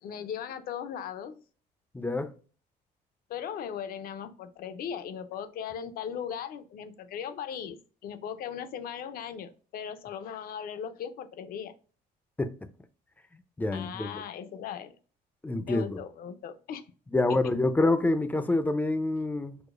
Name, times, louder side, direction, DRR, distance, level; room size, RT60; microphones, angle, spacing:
voice 1, 0.0-1.4 3.3-11.7 13.7-15.0 15.7-16.8 17.3-17.4, left 8 dB, 60° left, 0.5 m, -38 dB
voice 2, 1.9-2.3 12.4-12.6 13.6-14.2 15.4-16.0 17.1-19.6, left 2 dB, 10° left, 0.4 m, -27 dB
4.8 x 2.1 x 2.4 m
cardioid pair, 110°, 17 cm